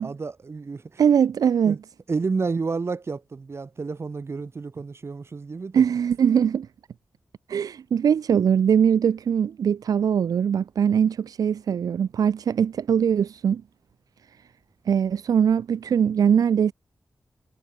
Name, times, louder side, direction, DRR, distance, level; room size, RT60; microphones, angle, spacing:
voice 1, 0.0-1.0 1.7-1.8 2.1-5.8, right 4 dB, 45° right, 1.2 m, -30 dB
voice 2, 1.0-1.8 5.7-6.7 7.5-13.6 14.9-16.7, right 8 dB, 80° right, 0.4 m, -21 dB
wide cardioid pair, 95°, 6 cm